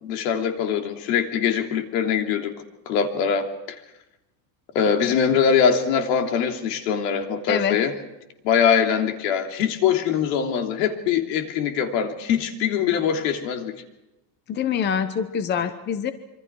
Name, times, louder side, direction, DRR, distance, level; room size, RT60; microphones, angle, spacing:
voice 1, 0.0-2.5 2.9-3.5 4.7-7.9 8.4-13.7, left 7 dB, 75° left, 4 dB, 3.2 m, -22 dB
voice 2, 14.5-16.1, left 7 dB, 20° left, 11 dB, 0.9 m, -25 dB
26.5 x 24.5 x 4.8 m, 0.98 s
cardioid pair, 165°, 50 cm